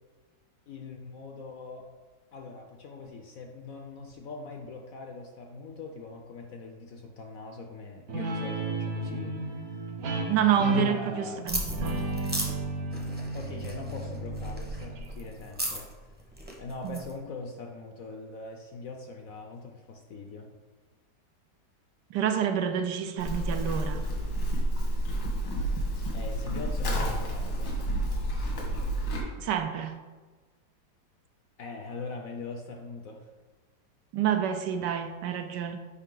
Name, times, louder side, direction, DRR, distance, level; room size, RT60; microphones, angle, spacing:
voice 1, 0.7-1.9 2.3-9.8 10.8-11.4 13.3-15.9 16.6-20.5 26.1-27.9 31.6-33.3 34.8-34.9, left 3 dB, 65° left, 3 dB, 0.9 m, -42 dB
Guitar, 8.1-15.3, right 1 dB, 55° right, 1.4 m, -33 dB
voice 2, 10.3-12.0 16.8-17.0 22.1-24.0 29.4-30.0 34.1-35.8, right 9 dB, 75° right, 7 dB, 1.2 m, -28 dB
sound 1, 11.5-17.1, equal, 10° right, 0.6 m, -36 dB
Livestock farm animals working animals, 23.2-29.2, right 1 dB, 85° left, 2.3 m, -30 dB
8.2 x 5.4 x 3.8 m, 1.3 s
omnidirectional pair, 2.0 m